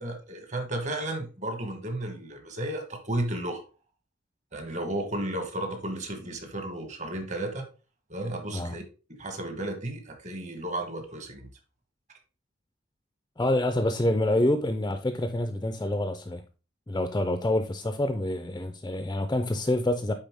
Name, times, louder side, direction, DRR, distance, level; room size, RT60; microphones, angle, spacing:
voice 1, 0.0-3.6 4.5-7.7 8.1-8.8 9.1-11.5, right 1 dB, 40° right, 1.4 m, -33 dB
voice 2, 13.4-16.4 16.9-20.1, left 1 dB, 20° left, 0.5 m, -27 dB
9.3 x 3.9 x 3.5 m
head